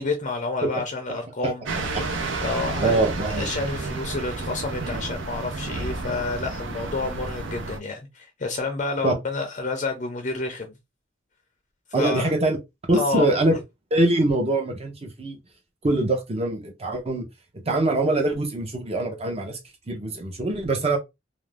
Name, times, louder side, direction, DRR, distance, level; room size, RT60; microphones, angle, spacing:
voice 1, 0.0-1.6 2.4-3.0 3.2-10.7 12.0-12.3 12.9-13.4, left 3 dB, 40° left, 0.5 m, -29 dB
sound 1, 1.7-7.8, right 3 dB, 75° right, 0.6 m, -31 dB
voice 2, 2.8-3.5 9.0-9.1 11.9-12.6 12.9-13.6 13.9-15.4 15.8-17.3 17.5-19.6 19.9-21.0, right 2 dB, 30° right, 0.7 m, -23 dB
2.5 x 2.0 x 3.2 m
head